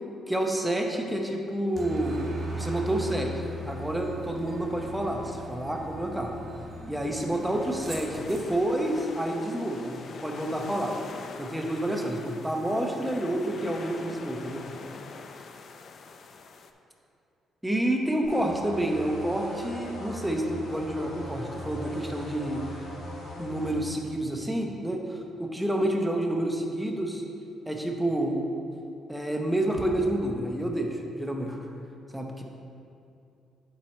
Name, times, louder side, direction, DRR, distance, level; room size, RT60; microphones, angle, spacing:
voice 1, 0.3-2.2 2.5-6.3 6.9-11.0 11.4-14.6 17.6-22.6 23.4-27.2 27.7-28.4 29.1-31.6 32.1-32.4, right 1 dB, 5° right, 2 dB, 0.8 m, -29 dB
Aircraft, 1.8-8.6, right 1 dB, 40° right, 1.2 m, -38 dB
sound 1, 7.3-16.7, left 4 dB, 55° left, 0.4 m, -44 dB
sound 2, 18.2-23.8, equal, 75° left, 1.7 m, -40 dB
7.7 x 4.5 x 4.2 m, 2.6 s
cardioid pair, 90°, 0 cm